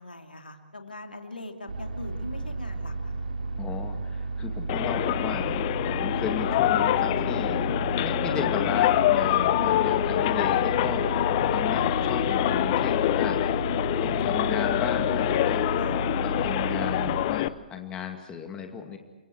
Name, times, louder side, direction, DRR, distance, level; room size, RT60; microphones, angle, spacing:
voice 1, 0.0-3.1 15.8-15.9, left 2 dB, 80° left, 4 dB, 2.9 m, -41 dB
sound 1, 1.7-17.3, right 3 dB, 65° right, 3.9 m, -33 dB
voice 2, 3.6-5.5 5.9-7.6 7.9-13.4 14.0-19.0, left 7 dB, 15° left, 4 dB, 2.2 m, -35 dB
sound 2, 4.7-17.5, left 14 dB, 35° left, 0.8 m, -25 dB
30.0 x 23.5 x 4.6 m, 1.3 s
figure-of-eight pair, 125°, 5 cm